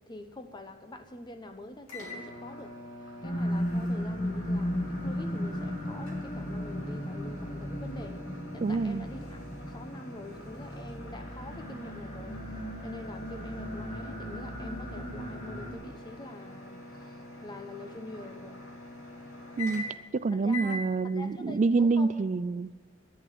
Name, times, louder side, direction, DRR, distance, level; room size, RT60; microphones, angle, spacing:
voice 1, 0.1-2.8 3.2-18.7 20.3-22.3, left 1 dB, 20° left, 8 dB, 0.9 m, -46 dB
sound 1, 1.9-20.1 20.5-20.8, left 1 dB, 90° left, 3.1 m, -45 dB
sound 2, 3.2-15.7, equal, 40° left, 2.5 m, -35 dB
voice 2, 8.6-9.1 19.6-19.8 20.1-22.7, right 4 dB, 35° right, 17 dB, 0.3 m, -27 dB
10.5 x 10.5 x 9.1 m, 1.4 s
head